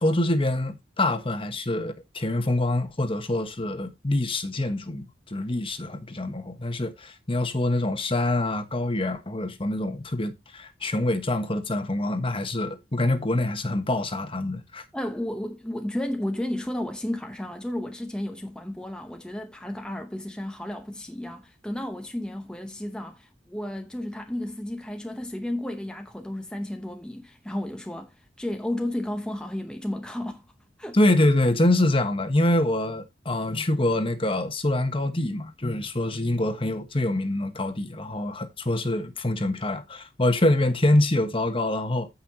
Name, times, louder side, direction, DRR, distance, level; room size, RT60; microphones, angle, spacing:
voice 1, 0.0-14.8 30.9-42.1, left 1 dB, 30° left, 1.3 m, -25 dB
voice 2, 14.9-30.4 30.8-31.0, left 1 dB, 5° left, 0.8 m, -33 dB
15.0 x 5.6 x 2.8 m
head